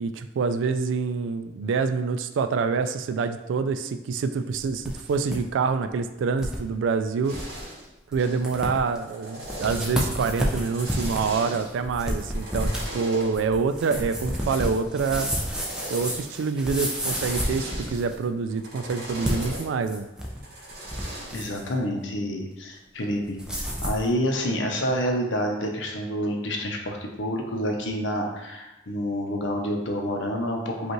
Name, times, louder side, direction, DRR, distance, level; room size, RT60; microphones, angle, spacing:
voice 1, 0.0-7.4 8.1-15.3 15.9-20.1, right 5 dB, 85° right, 9 dB, 0.3 m, -26 dB
sound 1, 4.5-5.4 5.7-5.8 6.4-6.6 7.0-7.1 7.3-7.6 8.1-8.2 8.4-9.0 9.4-18.2 19.1-20.4 20.7-21.7 23.4-24.1, equal, 5° right, 0.5 m, -31 dB
sound 2, 7.2-7.8 8.2-8.4 8.9-10.0 10.4-11.8 12.2-13.3 14.0-14.8 15.2-16.3 16.7-18.1 18.5-19.6 20.3-21.5, right 1 dB, 55° right, 1.3 m, -39 dB
voice 2, 21.3-30.9, equal, 85° left, 2 dB, 0.7 m, -28 dB
5.2 x 2.4 x 3.0 m, 0.97 s
head